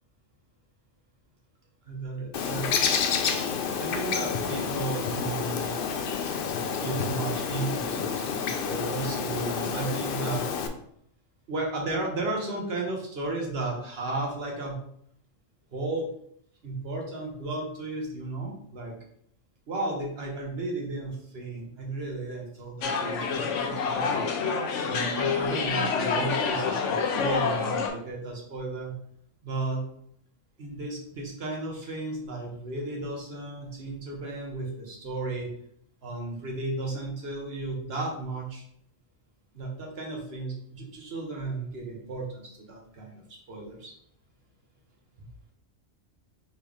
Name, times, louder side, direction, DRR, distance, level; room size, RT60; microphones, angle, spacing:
voice 1, 1.9-2.7 3.3-3.5 3.8-5.8 6.8-10.5 11.5-14.8 15.7-16.1 16.6-18.9 19.7-24.2 24.9-28.9 29.4-29.8 30.6-35.5 36.0-38.6 39.5-43.9 45.2-45.3, right 2 dB, 55° right, 0 dB, 1.3 m, -34 dB
Bird, 2.3-10.7, left 6 dB, 60° left, 0.6 m, -29 dB
sound 1, 22.8-27.9, left 5 dB, 80° left, 1.0 m, -27 dB
4.4 x 3.2 x 3.5 m, 0.67 s
omnidirectional pair, 1.2 m